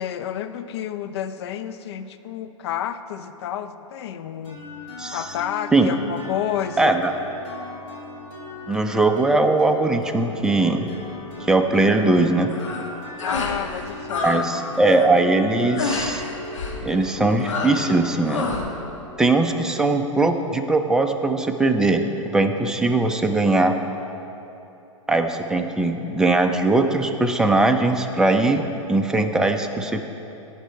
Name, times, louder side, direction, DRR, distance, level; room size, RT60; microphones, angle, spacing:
voice 1, 0.0-4.6 5.1-7.0 13.2-14.6 14.8-15.2, left 10 dB, 55° left, 10 dB, 0.5 m, -30 dB
sound 1, 4.4-20.1, left 3 dB, 30° left, 2.5 m, -38 dB
voice 2, 6.8-7.1 8.7-10.9 11.4-12.5 14.2-16.2 16.8-18.6 19.2-22.0 22.3-23.7 25.1-30.1, right 2 dB, 5° right, 5 dB, 0.5 m, -20 dB
sound 2, 12.5-12.9 13.2-13.6 13.8-14.4 14.7-15.0 15.8-16.1 16.5-16.8 17.4-17.9 18.2-18.7, left 3 dB, 70° left, 1.4 m, -28 dB
16.5 x 5.7 x 4.6 m, 3.0 s
figure-of-eight pair, 105°, 17 cm